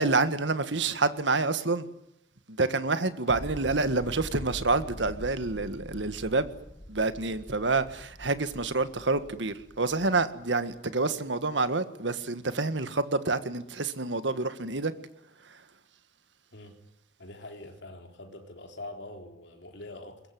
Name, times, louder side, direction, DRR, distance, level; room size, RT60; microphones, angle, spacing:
voice 1, 0.0-1.9 2.5-6.5 6.9-14.9 15.4-15.6, right 3 dB, 85° right, 1.7 m, -28 dB
sound 1, 3.3-10.8, equal, 20° left, 1.4 m, -44 dB
voice 2, 17.2-20.2, left 2 dB, 70° left, 3.8 m, -44 dB
22.0 x 21.5 x 9.5 m
head